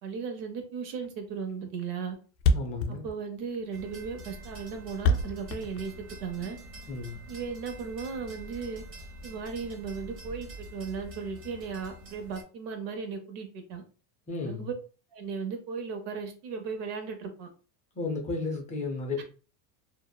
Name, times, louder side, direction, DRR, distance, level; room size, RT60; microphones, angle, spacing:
voice 1, 0.0-2.2 2.9-5.9 6.2-6.6 7.3-8.8 9.2-13.8 14.5-14.7 15.1-17.5 19.2-19.3, right 5 dB, 60° right, 0.7 m, -36 dB
Thump thud, 1.0-1.2 1.5-1.6 1.8-1.9 2.1-2.2 2.4-6.4, left 2 dB, 75° left, 0.6 m, -27 dB
voice 2, 2.5-3.1 6.9-7.2 14.3-14.7 17.9-19.2, left 3 dB, 20° left, 0.3 m, -33 dB
sound 1, 3.7-12.4, right 1 dB, 30° right, 0.7 m, -46 dB
2.8 x 2.0 x 2.2 m
supercardioid pair, 135°, 48 cm